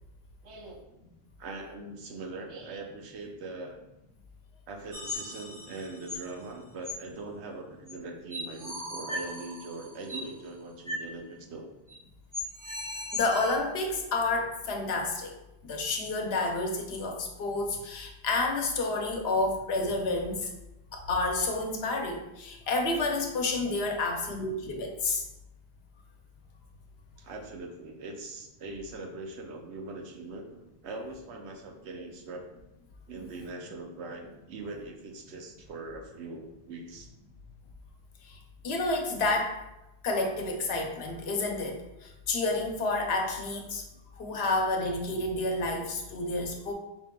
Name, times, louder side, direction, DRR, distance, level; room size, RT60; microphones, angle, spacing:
voice 1, 0.4-0.9 1.4-3.8 4.7-11.7 27.2-32.5 33.1-37.1 43.9-44.0, right 3 dB, 75° right, 3 dB, 0.9 m, -41 dB
sound 1, 4.9-6.3 6.8-6.9 7.9-8.0 8.3-10.3 10.9-11.1 11.3-11.4 11.9-12.0 12.3-13.6, left 1 dB, 20° right, 0.6 m, -38 dB
voice 2, 13.1-15.4 15.6-20.5 20.9-25.2 38.3-38.4 38.6-39.6 40.0-43.8 44.1-46.7, left 2 dB, 70° left, 2 dB, 0.9 m, -30 dB
5.1 x 3.6 x 2.2 m, 0.91 s
omnidirectional pair, 1.1 m